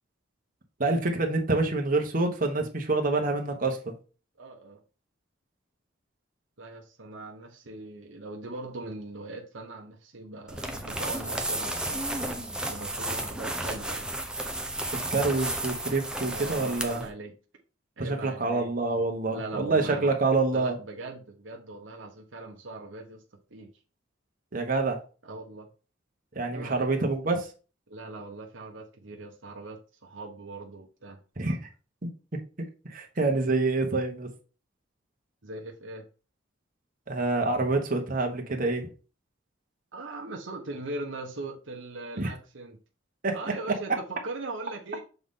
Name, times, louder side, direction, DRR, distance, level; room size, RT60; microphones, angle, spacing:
voice 1, 0.8-3.9 15.1-17.0 18.0-20.8 24.5-25.0 26.3-27.4 31.4-31.6 32.9-34.3 37.1-38.9 42.2-42.3 43.2-43.4, right 3 dB, 45° right, 1.2 m, -27 dB
voice 2, 4.4-4.8 6.6-14.1 16.2-17.3 18.0-18.7 19.3-20.1 20.5-23.2 23.5-23.7 25.2-25.7 26.5-27.1 27.9-31.2 35.4-36.0 39.9-42.8 43.3-45.0, right 2 dB, 75° right, 1.0 m, -40 dB
sound 1, 10.5-17.1, right 1 dB, 5° right, 0.8 m, -33 dB
6.8 x 4.0 x 3.7 m
head